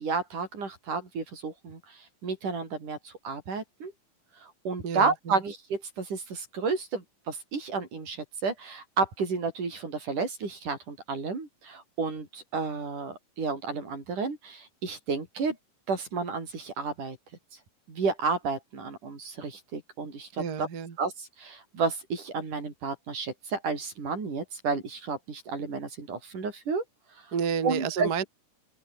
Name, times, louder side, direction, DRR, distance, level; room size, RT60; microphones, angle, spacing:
voice 1, 0.0-1.8 2.2-3.9 4.7-15.6 15.9-17.2 17.9-20.7 21.0-26.8 27.6-28.1, right 4 dB, 70° right, 7.3 m, -31 dB
voice 2, 4.8-5.4 20.4-21.0 27.3-28.2, right 6 dB, 35° right, 1.8 m, -30 dB
open air
omnidirectional pair, 3.7 m